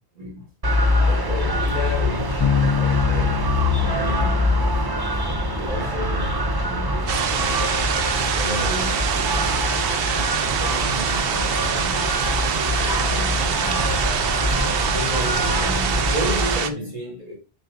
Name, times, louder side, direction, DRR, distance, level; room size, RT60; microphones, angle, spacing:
voice 1, 0.1-0.5 1.0-3.4 3.7-4.7 5.5-7.6 8.3-9.9 10.4-12.2 12.8-14.2 14.8-17.3, equal, 50° right, 2.8 m, -33 dB
sound 1, 0.6-16.6, left 1 dB, 25° right, 0.7 m, -24 dB
Bass guitar, 2.4-12.0, left 6 dB, 25° left, 0.8 m, -30 dB
sound 2, 7.1-16.7, right 7 dB, 65° right, 0.8 m, -25 dB
7.1 x 5.4 x 2.7 m
omnidirectional pair, 1.1 m